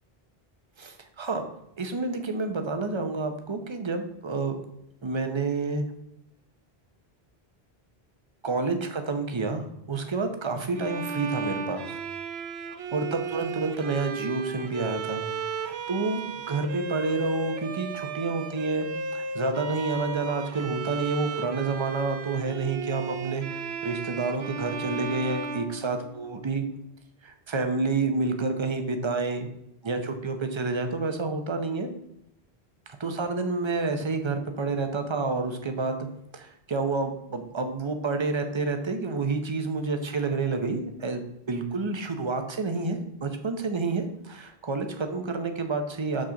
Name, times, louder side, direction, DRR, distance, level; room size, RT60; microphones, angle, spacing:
voice 1, 0.8-1.4 1.8-4.6 5.0-5.8 8.4-9.6 9.9-12.0 12.9-15.2 15.6-26.6 27.2-29.5 29.8-31.9 32.9-36.0 36.3-41.2 41.5-46.2, right 3 dB, 30° right, 6 dB, 0.8 m, -29 dB
Bowed string instrument, 10.7-26.5, right 5 dB, 80° right, 0.9 m, -35 dB
6.4 x 4.4 x 6.3 m, 0.79 s
omnidirectional pair, 1.1 m